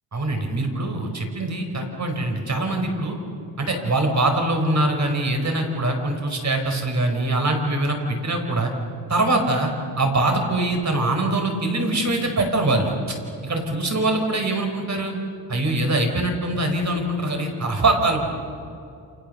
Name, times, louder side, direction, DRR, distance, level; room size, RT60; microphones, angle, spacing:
voice 1, 0.1-3.2 3.6-8.7 9.1-9.7 10.0-13.2 13.4-15.2 15.5-18.2, right 2 dB, 40° right, 4 dB, 5.1 m, -23 dB
29.5 x 28.0 x 6.9 m, 2.6 s
cardioid pair, 115°, 42 cm